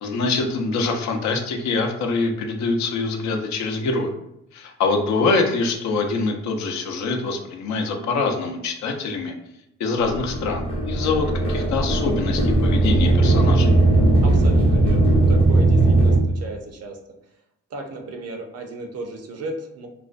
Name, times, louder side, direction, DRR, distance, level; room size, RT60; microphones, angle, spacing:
voice 1, 0.0-4.1 4.5-9.3 9.8-13.7, left 3 dB, 65° left, 3 dB, 0.5 m, -24 dB
sound 1, 10.0-16.2, right 2 dB, 20° left, 0.6 m, -18 dB
voice 2, 14.2-17.0 17.7-19.9, right 2 dB, 55° right, 3 dB, 0.5 m, -34 dB
2.4 x 2.1 x 2.4 m, 0.83 s
cardioid pair, 90°, 30 cm